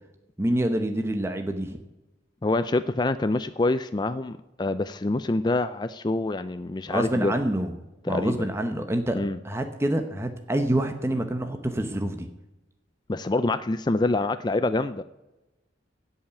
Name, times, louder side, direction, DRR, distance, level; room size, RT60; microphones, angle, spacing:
voice 1, 0.4-1.8 6.9-7.7 8.1-9.2 9.4-12.3, right 1 dB, 15° right, 6 dB, 0.8 m, -26 dB
voice 2, 2.4-7.3 8.0-8.5 9.1-9.4 13.1-15.0, left 2 dB, 25° left, 11 dB, 0.4 m, -26 dB
16.5 x 5.6 x 8.9 m, 1.0 s
head